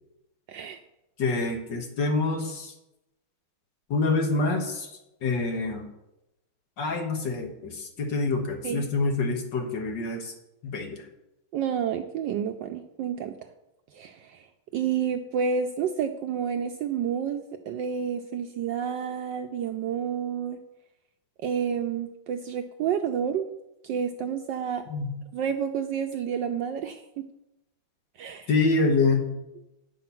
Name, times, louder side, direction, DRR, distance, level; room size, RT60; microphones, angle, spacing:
voice 1, 0.5-0.8 8.6-8.8 11.5-13.3 13.9-14.4 14.7-20.6 21.4-23.5 23.8-24.8 25.3-27.3 28.2-28.5, right 7 dB, 75° right, 6 dB, 1.1 m, -29 dB
voice 2, 1.2-2.7 3.9-4.9 5.2-5.9 6.8-10.3 10.6-11.1 24.9-25.1 28.5-29.3, left 3 dB, 60° left, 3 dB, 1.8 m, -26 dB
9.5 x 5.7 x 6.0 m, 0.91 s
omnidirectional pair, 2.4 m